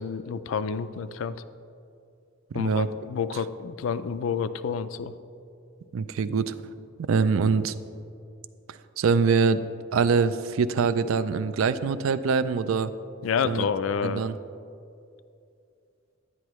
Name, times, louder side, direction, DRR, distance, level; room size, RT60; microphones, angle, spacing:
voice 1, 0.0-1.4 2.5-5.1 13.2-14.2, left 6 dB, 75° left, 13 dB, 0.4 m, -29 dB
voice 2, 2.5-2.9 5.9-6.5 7.0-7.7 9.0-9.6 9.9-12.9 13.4-13.7 14.0-14.4, right 5 dB, 85° right, 14 dB, 0.4 m, -24 dB
9.8 x 9.7 x 3.1 m, 2.6 s
head